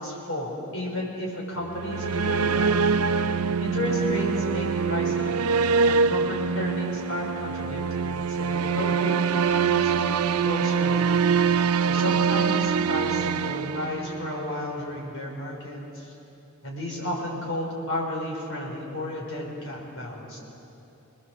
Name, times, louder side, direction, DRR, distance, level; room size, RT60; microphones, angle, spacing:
voice 1, 0.0-2.8 3.6-5.3 5.8-10.1 10.4-11.2 11.8-16.1 16.6-20.4, left 1 dB, 65° left, -2 dB, 5.3 m, -32 dB
sound 1, 1.6-14.5, right 5 dB, 85° right, 0.6 m, -24 dB
27.5 x 20.0 x 7.5 m, 3.0 s
head